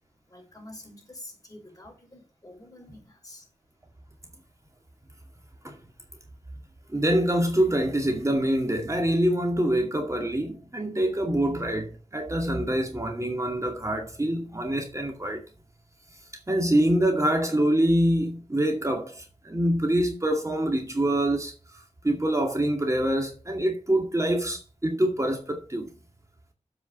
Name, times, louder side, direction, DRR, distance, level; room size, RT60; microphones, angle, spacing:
voice 1, 0.3-3.5 5.5-5.6, left 1 dB, 30° left, 5.7 m, -47 dB
voice 2, 6.9-15.4 16.5-25.9, right 1 dB, 25° right, 2.2 m, -25 dB
8.0 x 5.4 x 7.2 m
cardioid pair, 50°, 12 cm